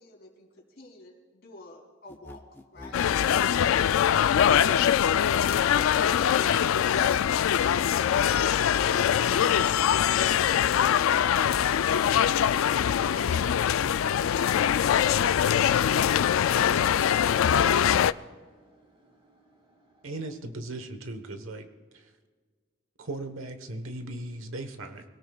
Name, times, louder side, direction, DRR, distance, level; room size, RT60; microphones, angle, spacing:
voice 1, 0.0-4.7, left 2 dB, 50° left, 0 dB, 3.2 m, -49 dB
sound 1, 2.1-4.9, left 1 dB, 10° left, 0.7 m, -46 dB
sound 2, 2.9-18.1, left 9 dB, 85° left, 0.3 m, -23 dB
voice 2, 18.0-20.1, right 2 dB, 25° right, -1 dB, 3.7 m, -63 dB
voice 3, 20.0-21.7 21.9-22.1 23.0-25.0, right 2 dB, 85° right, 8 dB, 1.2 m, -37 dB
25.0 x 18.0 x 2.4 m, 1.5 s
head